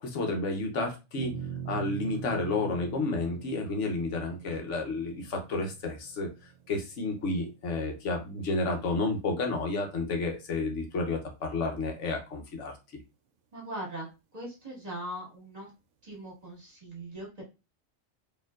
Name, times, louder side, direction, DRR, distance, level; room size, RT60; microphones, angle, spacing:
voice 1, 0.0-1.4 1.7-6.3 6.7-12.7, left 3 dB, 85° left, 3 dB, 1.2 m, -31 dB
sound 1, 1.2-7.7, right 8 dB, 80° right, 0.9 m, -42 dB
voice 2, 13.5-14.1 14.3-15.7 16.0-17.4, right 1 dB, 35° right, -4 dB, 1.7 m, -40 dB
4.4 x 2.9 x 2.4 m, 0.28 s
omnidirectional pair, 1.2 m